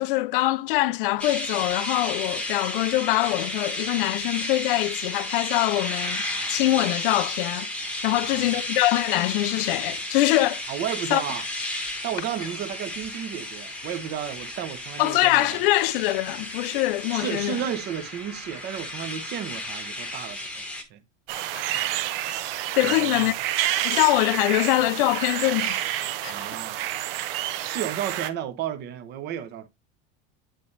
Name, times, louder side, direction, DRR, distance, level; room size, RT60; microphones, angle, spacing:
voice 1, 0.0-6.2 6.5-7.7 8.0-10.6 11.1-11.2 15.0-17.6 21.5-21.6 22.8-23.3 23.8-25.8 26.2-26.6, left 18 dB, 60° left, 0.4 m, -23 dB
sound 1, 1.2-20.8, left 1 dB, 5° left, 1.1 m, -33 dB
voice 2, 8.0-8.6 10.7-11.5 12.0-15.6 17.1-20.6 20.9-21.0 22.8-23.4 26.2-26.8 27.6-29.7, right 9 dB, 30° right, 0.9 m, -33 dB
sound 2, 21.3-28.3, right 13 dB, 65° right, 0.9 m, -29 dB
9.3 x 4.2 x 3.2 m
supercardioid pair, 165°, 31 cm